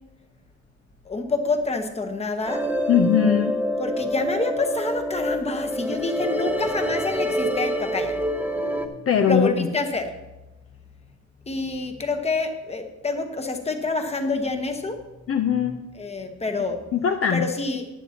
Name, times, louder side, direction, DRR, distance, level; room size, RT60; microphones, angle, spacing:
voice 1, 1.1-2.7 3.8-8.2 9.3-10.1 11.5-15.0 16.0-16.8 17.3-17.9, left 3 dB, 20° left, 6 dB, 1.0 m, -27 dB
sound 1, 2.5-8.9, equal, 5° right, 0.8 m, -26 dB
voice 2, 2.9-3.5 9.1-9.7 15.3-15.8 16.9-17.5, left 7 dB, 50° left, 6 dB, 0.6 m, -20 dB
15.5 x 10.0 x 2.9 m, 1.0 s
wide cardioid pair, 155°, 29 cm